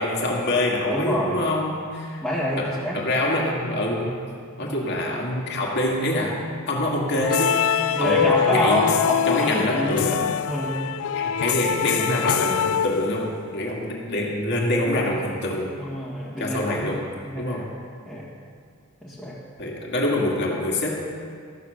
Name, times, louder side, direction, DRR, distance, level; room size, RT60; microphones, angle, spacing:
voice 1, 0.0-2.2 2.6-4.2 4.6-6.4 6.7-7.7 8.0-8.8 9.3-10.2 11.1-15.8 16.4-17.1 17.4-17.7 19.6-21.0, left 1 dB, 55° left, -2 dB, 2.0 m, -25 dB
voice 2, 0.9-1.4 2.2-3.0 3.3-3.4 4.6-4.8 7.9-10.8 15.8-17.0 17.2-17.7 18.1-18.3 19.0-19.4, equal, 5° left, -8 dB, 1.6 m, -27 dB
sound 1, 7.2-13.5, left 8 dB, 75° left, 0.3 m, -24 dB
13.5 x 6.9 x 6.6 m, 2.1 s
head